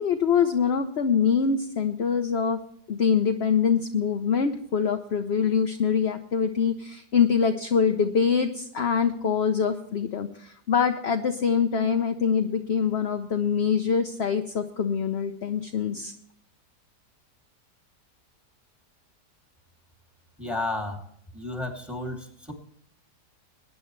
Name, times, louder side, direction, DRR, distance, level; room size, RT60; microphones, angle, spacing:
voice 1, 0.0-2.6 2.9-16.1, left 6 dB, 50° left, 6 dB, 0.9 m, -24 dB
voice 2, 20.4-21.0 21.3-22.5, left 2 dB, ahead, 2 dB, 2.6 m, -32 dB
22.0 x 9.6 x 3.2 m, 0.67 s
omnidirectional pair, 1.8 m